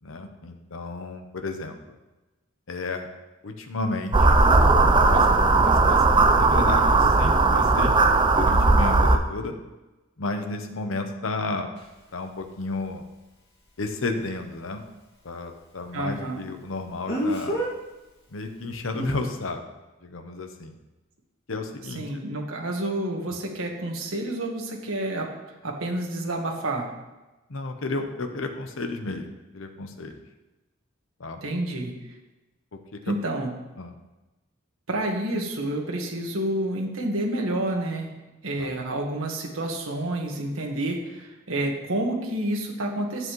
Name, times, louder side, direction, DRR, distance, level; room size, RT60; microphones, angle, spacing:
voice 1, 0.0-1.8 2.7-3.1 3.4-4.4 5.0-7.9 8.3-9.5 10.2-11.7 12.1-13.1 13.8-14.8 15.2-17.6 18.3-19.6 20.0-20.7 21.5-22.2 23.3-23.4 27.5-30.1 31.2-31.4 32.7-33.2 33.8-33.9 38.6-38.7, left 3 dB, 75° left, 5 dB, 0.9 m, -32 dB
sound 1, 4.1-9.2, right 3 dB, 25° right, 0.5 m, -18 dB
Speech, 11.8-11.9 17.1-17.7 18.9-19.2, equal, 55° left, 2.4 m, -27 dB
voice 2, 15.9-16.4 21.9-25.3 25.6-26.9 31.4-31.9 33.0-33.5 34.9-38.1 38.4-43.3, right 1 dB, 85° right, 1 dB, 1.6 m, -29 dB
9.8 x 7.7 x 3.1 m, 1.1 s
head